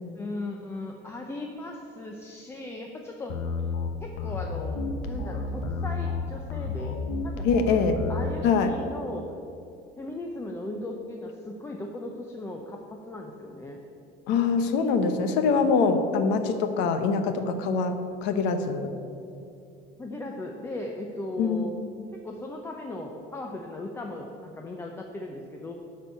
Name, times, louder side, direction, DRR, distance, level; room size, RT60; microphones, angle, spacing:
voice 1, 0.2-3.4 4.0-4.8 5.1-7.0 7.2-7.5 7.9-9.2 10.0-13.8 20.0-21.7 22.2-25.7, left 2 dB, 10° left, 1 dB, 0.5 m, -37 dB
sound 1, 3.3-8.3, left 3 dB, 80° left, 1.2 m, -31 dB
voice 2, 7.4-8.0 8.4-8.7 14.3-18.9 21.4-21.7, left 5 dB, 65° left, 7 dB, 0.9 m, -24 dB
12.5 x 4.5 x 8.5 m, 2.6 s
cardioid pair, 175°, 20 cm